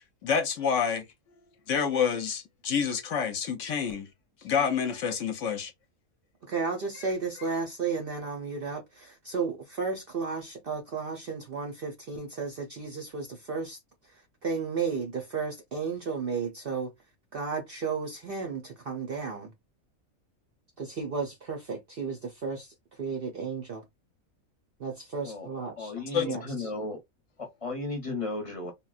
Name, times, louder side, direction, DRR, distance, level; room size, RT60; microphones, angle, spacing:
voice 1, 0.2-1.1 1.7-4.1 4.4-5.7 26.1-26.3, left 7 dB, 65° left, 0.9 m, -28 dB
voice 2, 6.4-16.9 17.3-19.5 20.8-23.8 24.8-25.9 26.2-26.7, right 5 dB, 55° right, 0.6 m, -33 dB
voice 3, 25.8-27.0 27.4-28.7, left 2 dB, 30° left, 0.7 m, -34 dB
3.7 x 2.1 x 2.4 m
omnidirectional pair, 1.5 m